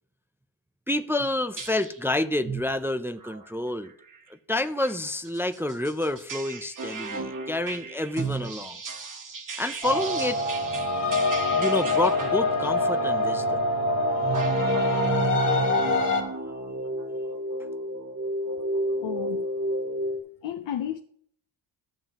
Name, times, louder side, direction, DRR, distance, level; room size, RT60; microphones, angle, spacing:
voice 1, 0.9-3.9 4.3-8.8 9.6-10.9 11.5-13.6, left 1 dB, 5° right, 0.3 m, -29 dB
sound 1, 1.2-1.3 1.6-2.0 2.5-2.7 3.2-3.4 3.8-4.2 4.8-12.8 14.2-20.2, right 2 dB, 40° right, 1.1 m, -33 dB
sound 2, 9.8-16.2, left 2 dB, 80° left, 2.0 m, -25 dB
voice 2, 19.0-19.4 20.4-21.0, left 10 dB, 65° left, 0.7 m, -32 dB
13.5 x 7.0 x 2.9 m
cardioid pair, 85°, 49 cm